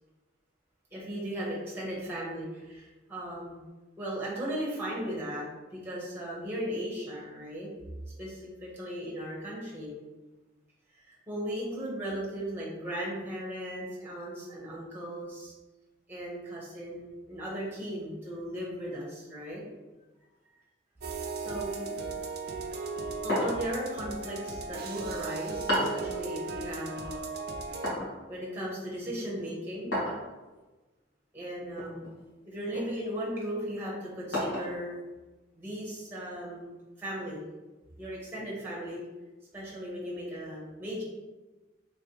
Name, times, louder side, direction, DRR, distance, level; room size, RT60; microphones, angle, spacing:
voice 1, 0.9-3.6 4.0-5.5 5.7-7.7 8.2-10.0 10.9-15.5 16.1-19.6 21.4-21.9 23.2-27.3 28.3-30.0 31.3-32.0 32.5-35.0 35.5-36.7 37.0-37.5 38.0-39.0 39.5-41.0, equal, 10° right, -5 dB, 0.9 m, -37 dB
sound 1, 21.0-27.9, right 4 dB, 50° right, 0.4 m, -37 dB
sound 2, 23.3-23.8 25.7-26.1 27.8-28.2 29.9-30.3 31.8-32.1 32.7-32.9 34.3-34.8, equal, 70° left, 1.5 m, -31 dB
3.2 x 3.1 x 2.9 m, 1.2 s
head